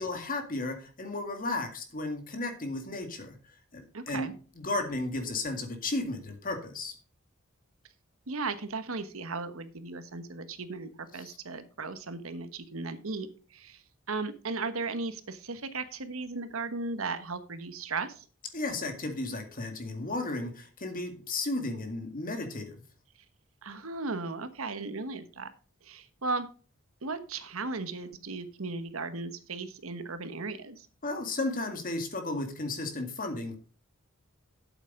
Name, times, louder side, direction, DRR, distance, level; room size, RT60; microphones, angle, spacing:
voice 1, 0.0-3.4 3.7-4.3 4.6-6.9 11.2-11.4 18.5-22.8 31.0-33.6, left 2 dB, 45° left, 6 dB, 2.0 m, -34 dB
voice 2, 3.9-4.3 8.3-13.8 14.1-18.2 23.6-25.5 25.8-26.5 27.0-30.9, right 3 dB, 90° right, 11 dB, 1.2 m, -36 dB
8.2 x 8.2 x 5.2 m, 0.39 s
head